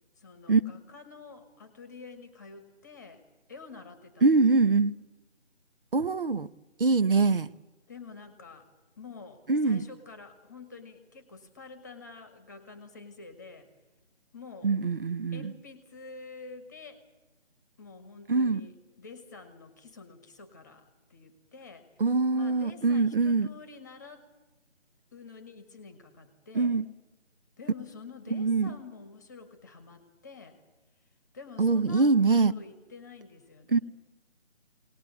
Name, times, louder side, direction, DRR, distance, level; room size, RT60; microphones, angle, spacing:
voice 1, 0.2-3.2 3.5-4.4 7.9-8.7 8.9-13.7 14.3-14.7 15.3-17.0 17.8-21.9 22.3-24.3 25.1-26.8 27.6-30.6 31.3-32.1 32.5-33.8, left 4 dB, 15° left, 1.3 m, -48 dB
voice 2, 4.2-5.0 5.9-6.5 6.8-7.5 9.5-9.8 14.6-15.5 18.3-18.6 22.0-23.5 26.5-26.8 28.3-28.7 31.6-32.5 33.7-33.8, right 4 dB, 50° right, 0.8 m, -23 dB
22.5 x 19.0 x 9.2 m
figure-of-eight pair, 165°, 35 cm